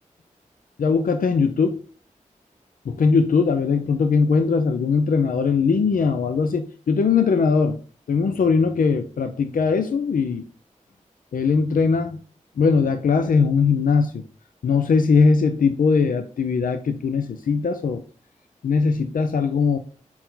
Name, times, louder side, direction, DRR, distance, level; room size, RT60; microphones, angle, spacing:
voice 1, 0.8-1.8 2.9-7.8 8.1-10.4 11.3-12.2 12.6-14.2 14.6-18.0 18.6-19.8, left 5 dB, 90° left, 8 dB, 0.5 m, -20 dB
5.6 x 4.5 x 3.8 m, 0.40 s
cardioid pair, 50°, 14 cm